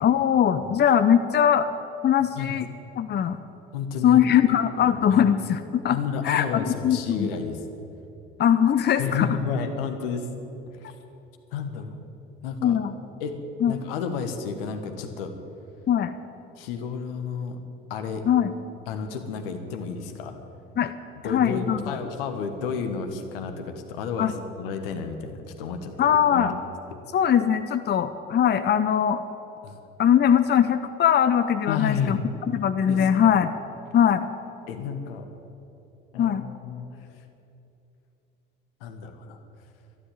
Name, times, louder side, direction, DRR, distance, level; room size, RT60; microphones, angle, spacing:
voice 1, 0.0-1.7 2.0-2.7 3.0-3.4 4.0-6.0 6.2-7.3 8.4-9.3 12.6-12.9 13.6-13.7 15.9-16.1 18.3-18.5 20.8-20.9 21.2-21.9 24.2-24.3 26.0-26.5 27.1-29.2 30.0-33.5 33.9-34.2 36.2-36.4, left 9 dB, 35° left, 11 dB, 0.7 m, -21 dB
voice 2, 3.7-4.2 4.8-5.2 5.9-7.6 9.0-10.3 10.7-10.9 11.5-12.0 12.4-12.8 13.2-13.3 13.7-15.3 16.6-17.6 17.9-18.2 18.9-20.4 21.2-26.5 29.6-29.8 31.7-32.2 32.9-33.1 34.7-35.3 36.1-36.9 38.8-39.4, left 6 dB, 75° left, 7 dB, 1.4 m, -31 dB
12.5 x 11.5 x 9.1 m, 2.9 s
hypercardioid pair, 55°, 29 cm